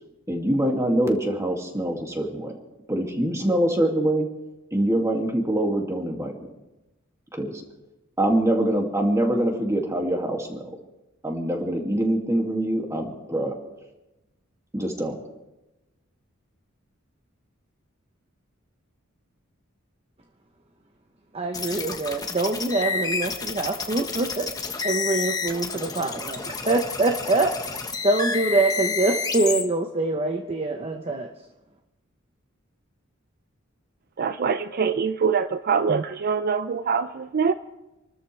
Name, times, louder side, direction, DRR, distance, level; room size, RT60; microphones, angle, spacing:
voice 1, 0.3-2.5 2.9-4.3 4.7-6.4 7.3-7.6 8.2-10.7 11.2-13.5 14.7-15.2, right 1 dB, 15° right, 1 dB, 2.4 m, -24 dB
voice 2, 21.3-24.5 24.8-27.5 28.0-31.3, right 2 dB, 30° right, 4 dB, 0.9 m, -24 dB
sound 1, 21.5-29.6, left 4 dB, 20° left, 1.3 m, -30 dB
voice 3, 34.2-37.5, right 6 dB, 50° right, 10 dB, 0.5 m, -24 dB
28.0 x 13.0 x 3.4 m, 1.0 s
head